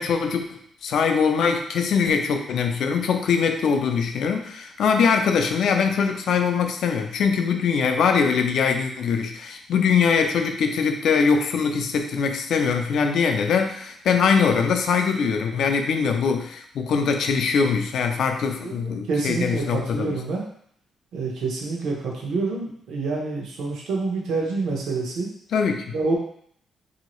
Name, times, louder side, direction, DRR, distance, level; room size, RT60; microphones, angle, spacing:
voice 1, 0.0-20.2 25.5-25.9, left 6 dB, 65° left, 5 dB, 0.4 m, -22 dB
voice 2, 18.6-20.5 21.1-25.3 25.9-26.2, right 3 dB, 80° right, -2 dB, 0.8 m, -27 dB
3.1 x 2.7 x 3.0 m, 0.65 s
cardioid pair, 155°, 0 cm